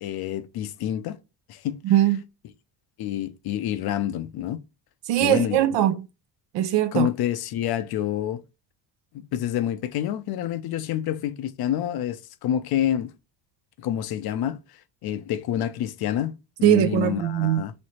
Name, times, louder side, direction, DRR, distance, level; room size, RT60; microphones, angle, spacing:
voice 1, 0.0-1.2 1.5-1.8 3.0-4.6 5.2-5.6 6.9-8.4 9.1-13.1 13.8-14.6 15.0-17.7, left 11 dB, 60° left, 0.6 m, -28 dB
voice 2, 1.8-2.2 5.1-6.1 6.5-7.1 16.6-17.6, right 13 dB, 70° right, 0.7 m, -21 dB
3.2 x 2.9 x 4.2 m
cardioid pair, 95°, 44 cm